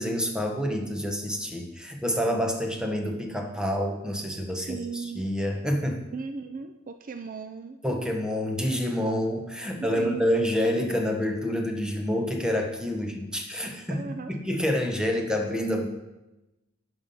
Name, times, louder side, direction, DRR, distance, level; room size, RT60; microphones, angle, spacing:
voice 1, 0.0-6.1 7.8-14.0 14.3-15.8, equal, 5° right, 2 dB, 1.2 m, -28 dB
voice 2, 4.6-5.2 6.1-7.8 9.9-10.3 13.9-14.3, right 4 dB, 40° right, 7 dB, 0.5 m, -36 dB
11.0 x 5.9 x 5.5 m, 0.99 s
head